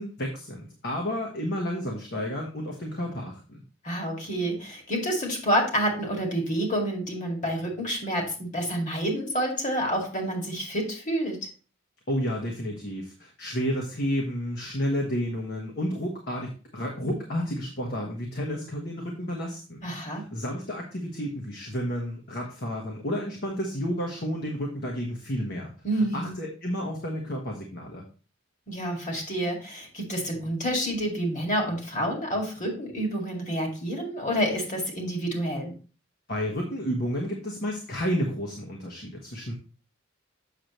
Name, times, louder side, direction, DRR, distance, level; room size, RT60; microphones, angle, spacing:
voice 1, 0.0-3.6 12.1-25.7 26.1-28.0 36.3-39.5, equal, 55° left, 0 dB, 1.3 m, -31 dB
voice 2, 3.8-11.4 19.8-20.2 25.8-26.4 28.7-35.8, equal, 40° left, 1 dB, 2.2 m, -28 dB
7.2 x 6.6 x 3.0 m, 0.37 s
head